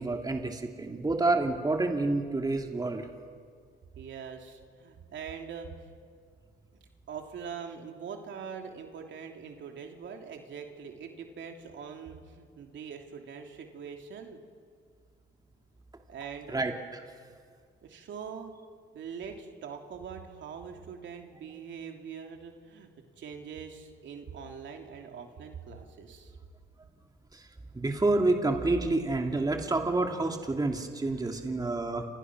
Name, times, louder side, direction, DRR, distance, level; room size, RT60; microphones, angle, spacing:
voice 1, 0.0-3.1 16.5-17.0 27.3-27.4 27.7-32.1, right 2 dB, 20° right, 3 dB, 2.7 m, -28 dB
voice 2, 3.9-5.9 7.1-14.4 16.1-16.6 17.8-18.5 18.9-22.9 23.2-26.4 31.2-31.3, right 6 dB, 70° right, 3 dB, 3.1 m, -43 dB
28.5 x 28.5 x 6.3 m, 2.1 s
cardioid pair, 90°, 20 cm